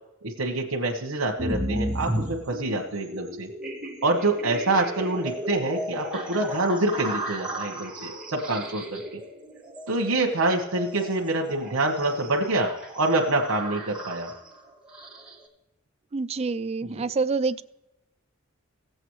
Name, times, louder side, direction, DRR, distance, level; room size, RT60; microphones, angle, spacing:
voice 1, 0.2-3.5 4.0-9.2 9.9-12.7 13.0-14.3 16.8-17.1, right 2 dB, 90° right, -1 dB, 1.2 m, -26 dB
sound 1, 1.4-15.5, right 1 dB, 5° right, 1.8 m, -35 dB
voice 2, 16.1-17.6, right 4 dB, 30° right, 11 dB, 0.3 m, -27 dB
17.0 x 7.9 x 3.1 m, 0.94 s
head